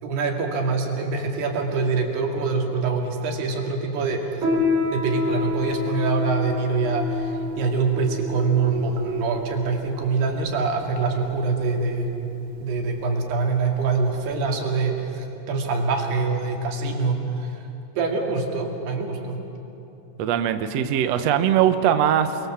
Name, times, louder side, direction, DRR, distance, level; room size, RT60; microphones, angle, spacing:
voice 1, 0.0-4.5 4.9-12.1 12.6-17.5 18.0-19.4, right 4 dB, 90° right, 2 dB, 4.5 m, -24 dB
Piano, 4.4-14.3, left 3 dB, 50° right, 5.3 m, -29 dB
voice 2, 20.2-22.4, right 10 dB, 75° right, 9 dB, 1.5 m, -21 dB
29.0 x 22.5 x 7.4 m, 3.0 s
omnidirectional pair, 4.5 m